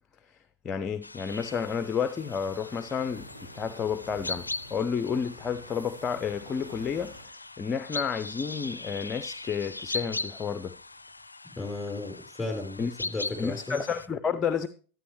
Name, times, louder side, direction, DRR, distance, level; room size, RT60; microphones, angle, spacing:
voice 1, 0.6-3.2 3.5-7.1 7.6-10.7 12.8-12.9 13.4-14.7, left 6 dB, 25° left, 0.6 m, -31 dB
sound 1, 1.0-14.1, left 3 dB, 85° left, 0.4 m, -40 dB
sound 2, 1.3-7.2, right 1 dB, 80° right, 4.5 m, -49 dB
voice 2, 11.5-13.8, left 2 dB, 5° left, 4.6 m, -34 dB
12.5 x 9.2 x 3.2 m
figure-of-eight pair, 95°, 0 cm